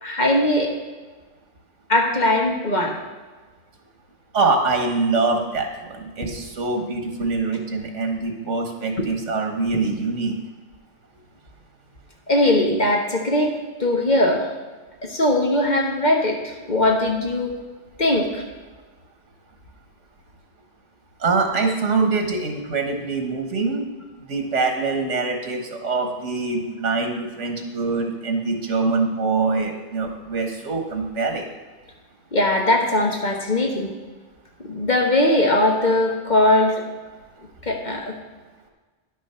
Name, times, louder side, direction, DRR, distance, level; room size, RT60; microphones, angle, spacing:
voice 1, 0.0-0.7 1.9-3.0 6.2-6.3 9.0-9.1 12.3-14.5 15.0-17.5 18.0-18.4 32.3-33.9 34.6-36.8 37.6-38.1, left 1 dB, 40° left, 1 dB, 1.4 m, -20 dB
voice 2, 4.3-10.4 21.2-23.9 24.2-31.4, right 3 dB, 80° right, 4 dB, 1.6 m, -24 dB
10.0 x 6.3 x 5.7 m, 1.3 s
omnidirectional pair, 1.2 m